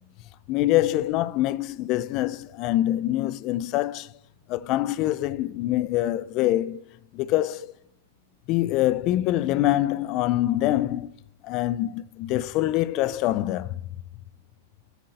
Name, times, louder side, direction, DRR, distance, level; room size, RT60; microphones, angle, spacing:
voice 1, 0.5-4.1 4.5-6.8 7.1-7.7 8.5-11.1 11.4-13.8, left 14 dB, 45° left, 0.5 m, -25 dB
7.9 x 6.5 x 6.4 m
hypercardioid pair, 115°, 0 cm